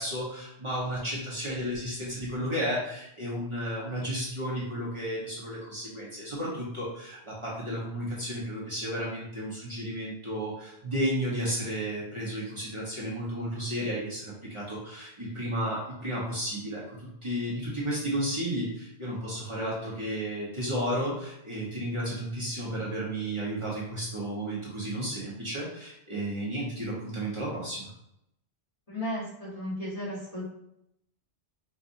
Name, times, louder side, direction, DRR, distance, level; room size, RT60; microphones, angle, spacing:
voice 1, 0.0-27.9, equal, 30° right, -7 dB, 1.0 m, -33 dB
voice 2, 28.9-30.4, left 1 dB, 35° left, -8 dB, 1.5 m, -34 dB
4.5 x 2.5 x 2.6 m, 0.79 s
omnidirectional pair, 1.2 m